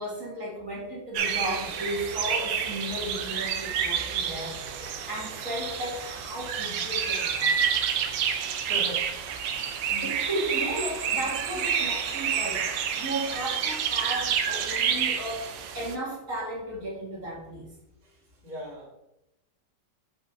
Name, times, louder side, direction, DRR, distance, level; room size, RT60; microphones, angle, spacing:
voice 1, 0.0-7.7 9.8-17.7, right 1 dB, 45° right, -4 dB, 2.3 m, -35 dB
sound 1, 1.1-16.0, right 7 dB, 90° right, 1.5 m, -29 dB
voice 2, 8.6-9.2 18.0-18.9, equal, 25° right, -4 dB, 1.7 m, -39 dB
5.7 x 4.1 x 5.7 m, 0.90 s
omnidirectional pair, 2.0 m